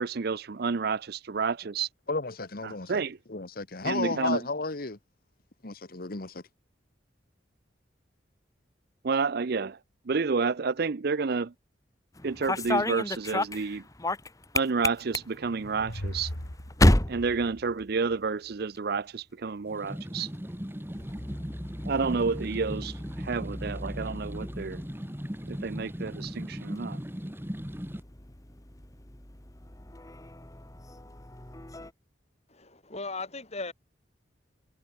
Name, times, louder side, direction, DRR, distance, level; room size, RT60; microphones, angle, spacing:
voice 1, 0.0-1.9 2.6-3.2 3.8-4.4 9.0-9.8 10.1-11.5 12.2-13.8 14.5-16.3 17.1-20.3 21.8-24.8 25.4-27.0, right 4 dB, 55° right, 0.6 m, -30 dB
voice 2, 2.1-3.0 3.3-5.0 5.6-6.4, left 3 dB, 50° left, 1.4 m, -33 dB
sound 1, 12.1-18.3 18.6-19.2 20.2-31.9, left 1 dB, 20° left, 1.6 m, -33 dB
sound 2, 15.2-18.5, equal, 75° left, 4.4 m, -40 dB
sound 3, 19.7-28.0, equal, 10° right, 2.1 m, -38 dB
voice 3, 32.5-33.7, left 3 dB, 35° left, 5.6 m, -37 dB
head